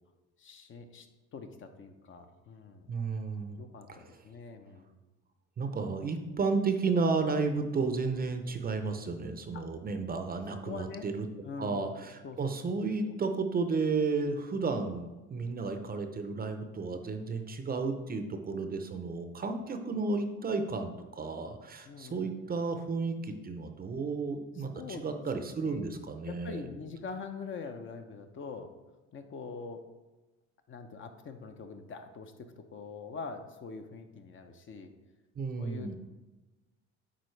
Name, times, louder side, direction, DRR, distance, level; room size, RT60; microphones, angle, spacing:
voice 1, 0.4-2.9 3.6-5.0 9.5-9.7 10.5-11.1 11.4-11.9 12.2-12.4 13.0-13.1 21.8-22.3 24.5-25.1 25.6-25.8 26.2-28.7 29.1-29.9 30.7-34.9 35.6-36.0, left 5 dB, 40° left, 7 dB, 0.7 m, -44 dB
voice 2, 2.9-3.6 5.6-11.3 11.6-26.6 35.4-36.0, right 4 dB, 30° right, 6 dB, 0.6 m, -32 dB
9.5 x 3.7 x 3.2 m, 1.1 s
supercardioid pair, 100°, 32 cm